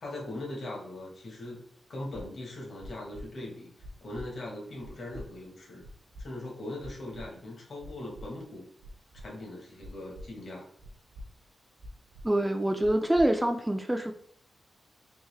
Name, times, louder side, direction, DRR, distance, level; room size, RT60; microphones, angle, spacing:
voice 1, 0.0-1.6 1.9-3.7 4.0-5.9 6.2-8.6 9.2-10.7, left 1 dB, 60° left, -1 dB, 1.2 m, -40 dB
sound 1, 2.1-2.2 2.8-3.2 3.8-4.2 4.8-5.2 5.8-6.2 6.8-7.2 7.8-8.2 8.8-9.2 9.8-10.2 10.8-11.2 11.8-12.2 12.8-13.2, left 1 dB, 65° right, 0.6 m, -44 dB
voice 2, 12.2-14.1, right 1 dB, 10° right, 5 dB, 0.3 m, -25 dB
3.5 x 2.5 x 3.2 m, 0.66 s
wide cardioid pair, 100°, 0 cm